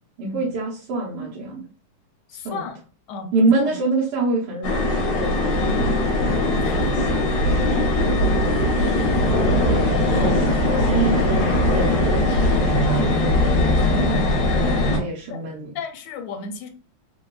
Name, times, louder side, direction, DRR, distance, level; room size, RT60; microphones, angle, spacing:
voice 1, 0.2-1.6 2.3-2.6 3.3-5.6 6.8-7.4 7.7-8.7 10.0-13.3 15.0-15.7, right 3 dB, 80° right, -7 dB, 1.7 m, -26 dB
voice 2, 2.3-2.8 3.1-3.8 6.6-7.1 9.5-9.9 13.9-14.4 15.3-15.4 15.7-16.7, left 2 dB, 80° left, 7 dB, 1.4 m, -34 dB
sound 1, 4.6-15.0, left 1 dB, 65° left, 1.3 m, -20 dB
3.9 x 2.2 x 2.3 m, 0.38 s
omnidirectional pair, 2.4 m